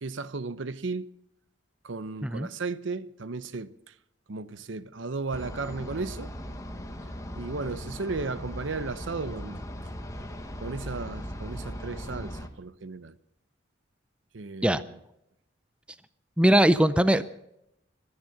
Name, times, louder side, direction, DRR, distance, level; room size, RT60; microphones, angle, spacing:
voice 1, 0.0-1.1 1.8-3.9 4.3-6.3 7.3-9.7 10.6-13.1 14.3-15.0, right 3 dB, 70° right, 0.7 m, -35 dB
sound 1, 5.3-12.5, equal, 15° left, 1.3 m, -38 dB
voice 2, 16.4-17.2, right 1 dB, 5° right, 0.5 m, -20 dB
23.5 x 9.7 x 5.9 m
head